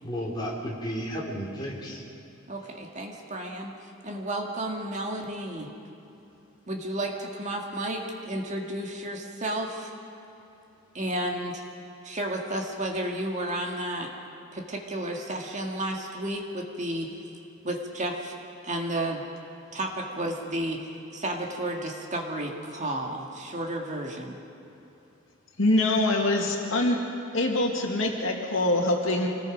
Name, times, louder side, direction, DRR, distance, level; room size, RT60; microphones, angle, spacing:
voice 1, 0.0-2.0, equal, 20° left, -3 dB, 3.4 m, -33 dB
voice 2, 2.5-3.8 4.0-5.7 6.7-9.9 10.9-11.6 12.0-14.1 14.5-17.1 17.6-18.3 18.6-19.3 19.7-24.4, right 1 dB, 35° right, 1 dB, 2.0 m, -32 dB
voice 3, 25.6-27.0 27.3-29.3, left 2 dB, 70° left, 0 dB, 2.4 m, -24 dB
26.0 x 19.0 x 5.2 m, 2.9 s
head